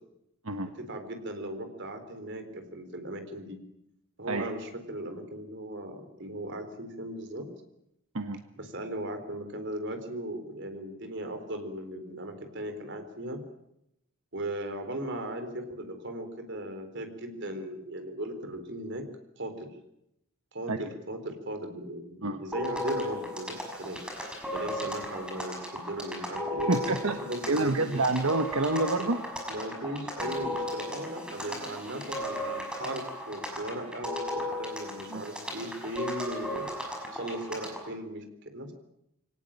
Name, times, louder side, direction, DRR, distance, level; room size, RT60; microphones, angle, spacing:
voice 1, 0.8-3.6 4.2-7.5 8.6-13.4 14.3-19.0 19.4-19.7 20.5-24.0 24.5-26.7 27.2-28.1 29.5-36.7 37.1-38.7, right 1 dB, 55° right, 7 dB, 4.1 m, -37 dB
sound 1, 22.5-37.9, left 1 dB, 5° right, 5.8 m, -36 dB
voice 2, 26.7-27.2 27.5-29.2 35.1-35.3, right 2 dB, 80° right, 7 dB, 1.4 m, -27 dB
24.0 x 18.0 x 8.9 m, 0.82 s
head